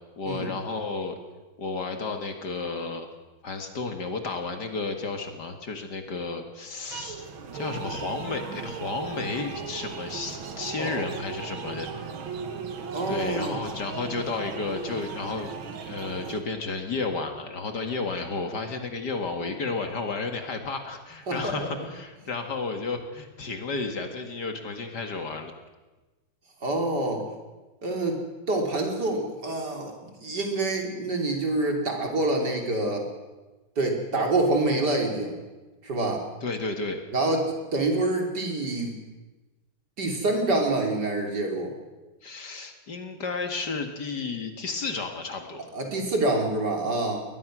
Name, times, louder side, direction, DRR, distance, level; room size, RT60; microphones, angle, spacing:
voice 1, 0.2-1.2 1.6-3.1 3.4-7.3 7.5-11.9 13.1-15.5 15.8-25.5 36.4-37.0 42.2-45.7, left 3 dB, 55° left, 5 dB, 2.5 m, -32 dB
sound 1, 6.9-16.4, right 6 dB, 85° right, 2.2 m, -37 dB
voice 2, 12.9-13.6 21.3-21.7 26.6-27.2 27.8-28.2 28.5-33.1 33.8-35.4 35.8-36.2 37.1-39.0 40.0-41.7 45.7-47.2, right 2 dB, 55° right, 2 dB, 3.7 m, -26 dB
22.0 x 19.5 x 6.2 m, 1.2 s
omnidirectional pair, 2.1 m